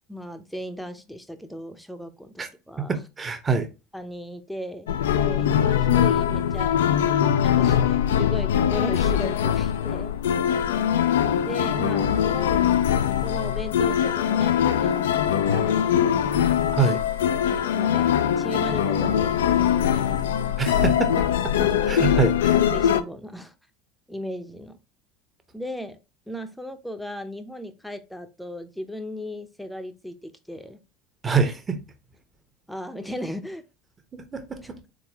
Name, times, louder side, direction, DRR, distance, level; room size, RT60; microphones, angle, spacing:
voice 1, 0.1-3.0 3.9-6.8 7.4-10.1 11.4-12.6 13.2-16.5 17.5-20.7 22.5-23.5 24.1-24.8 25.5-26.0 26.3-30.8 32.7-33.6, equal, ahead, 0.7 m, -36 dB
voice 2, 2.8-3.7 16.7-17.0 20.6-22.6 31.2-31.8 34.1-34.9, right 5 dB, 25° right, 1.0 m, -26 dB
sound 1, 4.9-23.0, left 9 dB, 70° left, 0.4 m, -22 dB
4.1 x 3.8 x 2.9 m
figure-of-eight pair, 70°, 0 cm